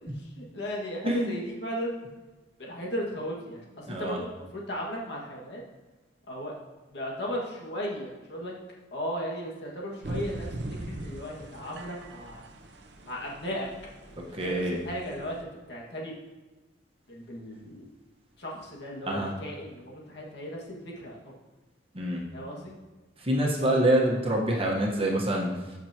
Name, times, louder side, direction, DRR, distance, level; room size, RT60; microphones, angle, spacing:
voice 1, 0.0-2.0 2.6-5.6 6.3-6.5 6.9-8.5 8.9-10.5 10.8-12.4 13.0-13.7 14.4-15.4 15.7-16.1 17.1-17.9 18.4-21.4 22.3-22.7, equal, 65° left, -3 dB, 1.9 m, -36 dB
voice 2, 1.0-1.4 3.9-4.2 14.3-14.8 19.1-19.3 21.9-22.2 23.2-25.5, right 1 dB, 30° right, -2 dB, 1.3 m, -26 dB
sound 1, 10.0-15.4, right 1 dB, 70° right, 0.8 m, -41 dB
14.0 x 6.0 x 3.0 m, 1.2 s
head